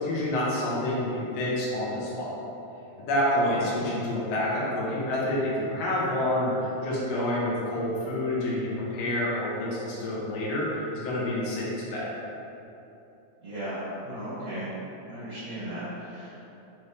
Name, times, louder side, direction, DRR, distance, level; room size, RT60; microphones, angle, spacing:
voice 1, 0.0-2.3 3.0-6.5 6.8-12.0, left 1 dB, 65° left, -6 dB, 1.9 m, -28 dB
voice 2, 13.4-14.7 15.1-16.4, right 1 dB, 50° right, -17 dB, 2.0 m, -36 dB
5.5 x 2.7 x 3.2 m, 2.9 s
omnidirectional pair, 3.5 m